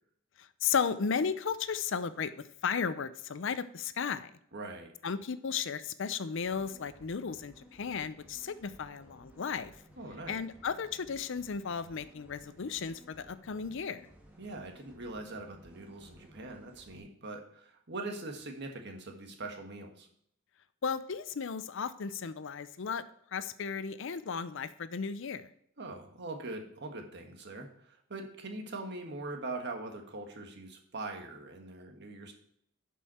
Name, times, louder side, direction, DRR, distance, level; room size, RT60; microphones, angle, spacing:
voice 1, 0.4-2.3 2.6-4.3 5.0-9.7 10.3-14.1 20.8-23.0 23.3-25.5, left 6 dB, 65° left, 13 dB, 0.5 m, -34 dB
voice 2, 4.5-4.9 10.0-10.4 14.4-20.1 25.8-32.3, right 2 dB, 60° right, 3 dB, 1.5 m, -42 dB
sound 1, 6.4-17.0, equal, 10° right, 1.8 m, -57 dB
11.0 x 5.5 x 4.3 m, 0.67 s
head